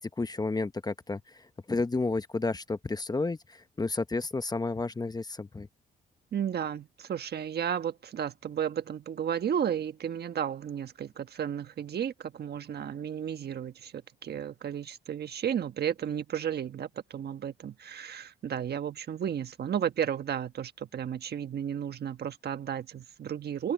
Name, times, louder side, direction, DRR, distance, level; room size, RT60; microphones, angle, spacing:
voice 1, 0.2-5.7, left 3 dB, 20° left, 1.1 m, -31 dB
voice 2, 6.3-23.7, right 9 dB, 55° right, 1.4 m, -33 dB
open air
cardioid pair, 90°, 20 cm